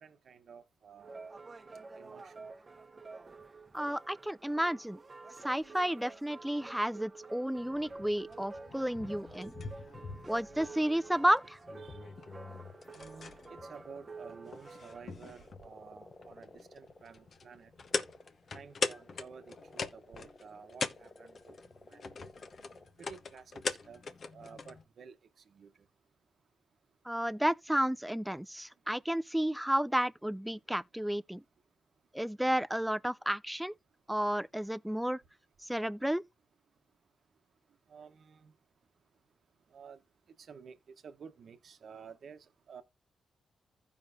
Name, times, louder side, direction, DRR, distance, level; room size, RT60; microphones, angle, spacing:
voice 1, 0.0-1.2 1.9-2.4 11.8-12.0 13.0-17.7 18.5-21.5 21.9-22.0 23.0-24.0 24.3-25.2 25.5-25.7 37.9-38.5 39.7-40.0 40.4-40.8 41.0-42.8, right 6 dB, 65° right, 0.9 m, -52 dB
sound 1, 1.0-15.1, right 3 dB, 35° right, 0.8 m, -49 dB
voice 2, 3.7-5.0 5.4-9.5 10.3-11.6 27.1-31.4 32.1-33.7 34.1-35.2 35.6-36.2, equal, 5° right, 0.4 m, -32 dB
sound 2, 7.5-24.8, left 4 dB, 60° left, 0.9 m, -42 dB
sound 3, 12.2-14.4 14.8-22.9, left 2 dB, 30° left, 1.3 m, -56 dB
15.0 x 5.2 x 2.5 m
cardioid pair, 70°, 0 cm